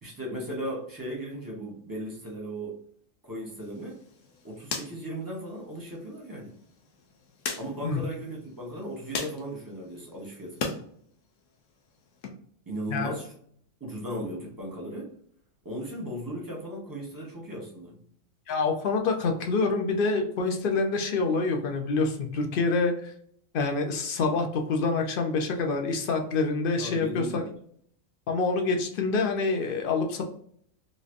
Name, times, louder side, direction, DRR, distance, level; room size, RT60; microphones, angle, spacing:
voice 1, 0.0-2.8 3.2-4.0 4.4-6.6 7.6-10.6 12.7-13.3 13.8-15.2 15.6-18.0 26.8-27.5, right 1 dB, 20° right, -2 dB, 0.8 m, -36 dB
sound 1, 3.6-10.8 11.2-12.3, left 4 dB, 70° left, 1.0 m, -40 dB
voice 2, 18.5-23.1 23.5-27.4 28.3-30.2, left 3 dB, 55° left, 3 dB, 0.6 m, -26 dB
3.1 x 2.7 x 2.5 m, 0.63 s
omnidirectional pair, 1.4 m